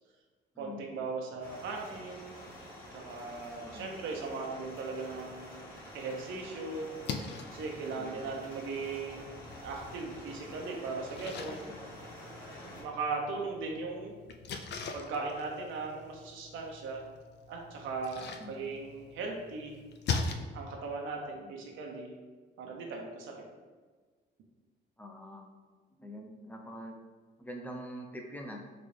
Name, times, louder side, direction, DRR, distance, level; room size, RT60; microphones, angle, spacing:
voice 1, 0.6-2.4 2.9-5.6 5.9-6.9 7.5-11.8 12.8-14.1 14.9-17.0 17.5-19.7 20.5-22.1 22.6-23.4, right 4 dB, 80° right, 0 dB, 0.6 m, -38 dB
sound 1, 1.4-12.8, equal, 75° left, 1.2 m, -48 dB
Splash splatter, 6.8-20.3, left 5 dB, 60° left, 0.4 m, -42 dB
voice 2, 8.0-8.3 18.4-18.7 21.4-21.6 25.0-25.5 26.0-27.0 27.4-28.6, equal, 10° left, 2 dB, 0.5 m, -45 dB
3.8 x 2.3 x 3.2 m, 1.4 s
cardioid pair, 90°, 20 cm